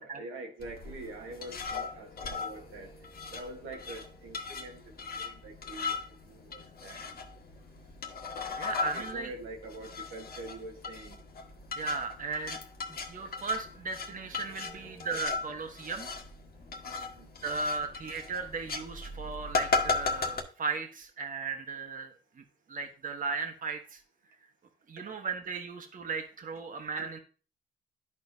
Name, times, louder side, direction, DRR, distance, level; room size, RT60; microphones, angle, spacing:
voice 1, 0.0-6.0 6.3-7.0 8.8-11.2 14.5-15.1 16.8-17.3 27.0-27.1, right 2 dB, 85° right, 1.5 m, -45 dB
sound 1, 0.6-20.4, left 4 dB, 50° left, 1.4 m, -37 dB
voice 2, 8.6-9.3 11.7-12.6 12.9-16.1 17.4-24.0 24.9-27.2, right 4 dB, 40° right, 1.4 m, -36 dB
12.0 x 4.4 x 2.7 m
cardioid pair, 90°, 20 cm